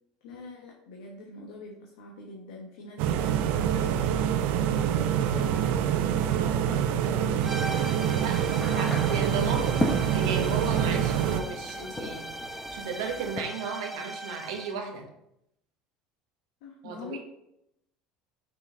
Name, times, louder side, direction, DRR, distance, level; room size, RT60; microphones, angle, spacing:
voice 1, 0.2-7.3 16.6-17.2, left 2 dB, 85° left, -1 dB, 1.0 m, -44 dB
sound 1, 3.0-11.4, right 9 dB, 70° right, 0.5 m, -26 dB
sound 2, 7.4-14.8, right 1 dB, 5° right, 0.5 m, -40 dB
sound 3, 7.5-13.4, left 1 dB, 10° left, 0.9 m, -36 dB
voice 2, 8.1-9.9 10.1-15.1 16.8-17.2, right 4 dB, 90° right, 2 dB, 1.1 m, -34 dB
6.0 x 4.6 x 3.6 m, 0.80 s
supercardioid pair, 105°, 3 cm